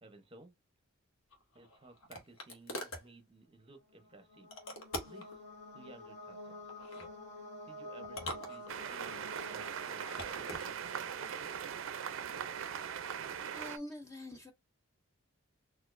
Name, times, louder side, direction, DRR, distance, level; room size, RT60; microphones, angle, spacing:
voice 1, 0.0-0.5 1.5-4.5 5.0-5.4 5.7-6.6 7.7-10.7, right 2 dB, 25° right, 0.7 m, -57 dB
sound 1, 1.3-3.1 4.5-5.3 6.7-7.1 8.0-9.1 9.9-10.7, left 1 dB, 80° left, 1.0 m, -44 dB
sound 2, 3.9-11.6, left 1 dB, 55° left, 1.8 m, -50 dB
sound 3, 8.7-13.8, right 7 dB, 70° right, 0.4 m, -40 dB
voice 2, 13.5-14.5, left 1 dB, 15° left, 0.4 m, -45 dB
4.2 x 2.4 x 2.4 m
head